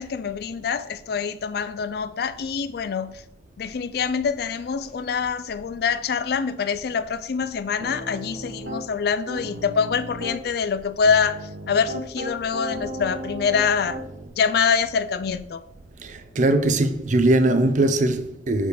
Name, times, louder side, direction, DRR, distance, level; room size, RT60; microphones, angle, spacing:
voice 1, 0.0-3.2 3.6-14.0 14.4-15.6, left 6 dB, 60° left, 0.4 m, -25 dB
Piano, 7.8-8.9 9.3-10.4 11.0-14.3, right 1 dB, 70° right, 0.9 m, -35 dB
voice 2, 16.0-18.7, right 2 dB, 45° right, 0.5 m, -20 dB
4.9 x 4.7 x 5.0 m
head